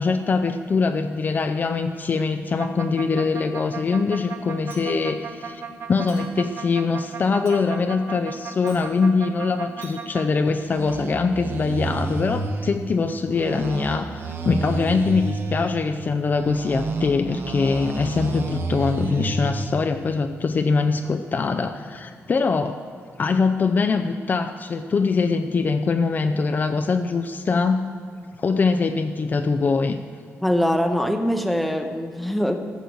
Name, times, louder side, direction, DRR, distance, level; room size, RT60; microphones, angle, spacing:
voice 1, 0.0-5.6 5.9-22.8 23.2-27.8 28.4-30.0, left 4 dB, 35° left, 7 dB, 0.5 m, -23 dB
sound 1, 2.6-10.3 10.6-12.8 13.3-15.8 16.3-19.7, right 3 dB, 45° right, 0.9 m, -31 dB
Chink clink, 4.7-5.2 6.1-6.5 7.5-8.0 8.7-8.9 9.8-10.0, right 4 dB, 75° right, 3.0 m, -46 dB
voice 2, 30.4-32.7, equal, ahead, 6 dB, 0.8 m, -23 dB
14.0 x 6.8 x 7.8 m, 2.1 s
wide cardioid pair, 150°, 5 cm